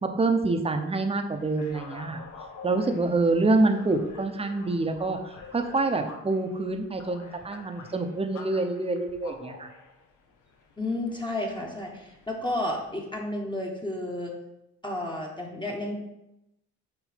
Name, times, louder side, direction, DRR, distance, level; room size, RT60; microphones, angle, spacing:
voice 1, 0.0-2.2 2.6-9.7, right 2 dB, 20° right, 6 dB, 0.8 m, -26 dB
sound 1, 1.3-13.2, left 4 dB, 75° left, 1.0 m, -47 dB
voice 2, 10.8-14.3 14.8-15.9, left 1 dB, 15° left, -1 dB, 1.1 m, -32 dB
6.4 x 3.1 x 5.1 m, 0.88 s
cardioid pair, 90°, 30 cm